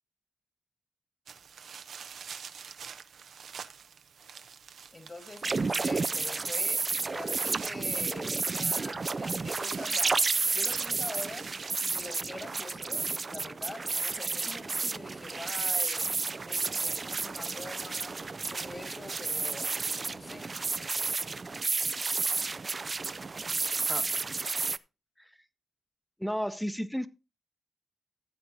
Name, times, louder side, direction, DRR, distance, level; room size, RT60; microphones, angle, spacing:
sound 1, 1.3-12.1, right 7 dB, 75° right, 0.7 m, -48 dB
voice 1, 4.9-11.5 11.8-19.8 20.1-20.5, left 2 dB, 40° left, 1.9 m, -45 dB
sound 2, 5.4-24.8, right 4 dB, 40° right, 0.4 m, -31 dB
voice 2, 26.2-27.1, equal, 5° left, 0.8 m, -33 dB
15.5 x 7.5 x 2.8 m
cardioid pair, 55°, 0 cm